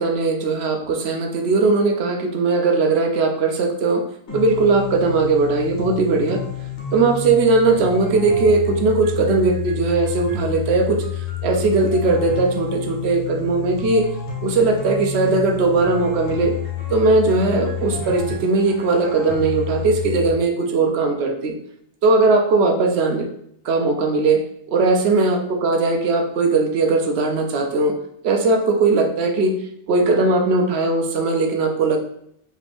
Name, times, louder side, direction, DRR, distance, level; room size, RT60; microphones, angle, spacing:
voice 1, 0.0-4.0 4.3-6.4 6.9-14.1 14.4-16.5 16.9-21.5 22.0-23.3 23.6-24.4 24.7-27.9 28.2-29.6 29.9-32.0, right 3 dB, 75° right, 3 dB, 0.9 m, -19 dB
sound 1, 4.3-20.3, left 8 dB, 85° left, 1.2 m, -30 dB
3.2 x 2.5 x 3.3 m, 0.71 s
omnidirectional pair, 1.1 m